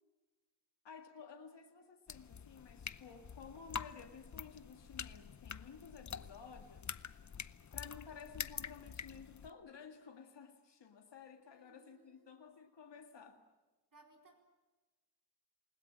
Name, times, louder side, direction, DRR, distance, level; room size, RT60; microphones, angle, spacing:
voice 1, 0.8-7.0 7.7-13.4, left 6 dB, 85° left, 2.0 m, -54 dB
sound 1, 2.1-9.5, left 7 dB, 45° left, 0.7 m, -47 dB
voice 2, 11.4-12.4 13.9-14.4, right 2 dB, 50° right, 4.5 m, -64 dB
28.5 x 20.5 x 7.5 m
wide cardioid pair, 125°, 41 cm